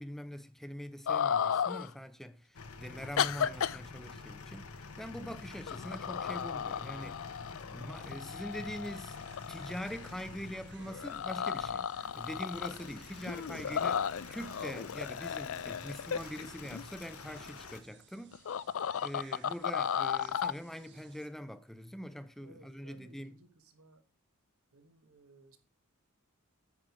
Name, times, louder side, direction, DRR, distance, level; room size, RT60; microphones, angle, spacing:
voice 1, 0.0-7.2 7.7-9.2 9.5-11.9 12.2-18.4 19.0-23.4, equal, ahead, 0.5 m, -43 dB
sound 1, 1.1-1.9 3.2-3.8 5.2-5.4 5.7-10.2 10.8-12.9 13.2-16.8 18.3-20.5, left 8 dB, 60° left, 0.4 m, -34 dB
sound 2, 2.5-17.8, left 4 dB, 80° left, 1.1 m, -48 dB
sound 3, 8.9-21.3, right 6 dB, 50° right, 1.2 m, -60 dB
voice 2, 22.4-23.5 23.7-24.0 24.7-25.6, right 2 dB, 75° right, 1.5 m, -59 dB
9.0 x 6.1 x 4.8 m
head